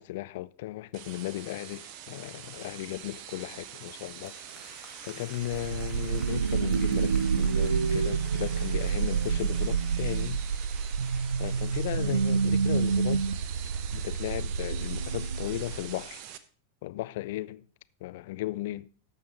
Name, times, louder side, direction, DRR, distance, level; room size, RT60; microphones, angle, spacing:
voice 1, 0.0-4.4 5.0-10.4 11.4-13.3 13.9-16.2 16.8-17.7 18.0-18.9, left 16 dB, 50° left, 0.4 m, -36 dB
sound 1, 0.9-16.4, right 10 dB, 45° right, 0.8 m, -45 dB
sound 2, 3.8-14.1, left 2 dB, 5° left, 2.1 m, -53 dB
sound 3, 5.4-16.0, right 5 dB, 70° right, 0.5 m, -28 dB
13.5 x 5.6 x 4.5 m
figure-of-eight pair, 90°, 0 cm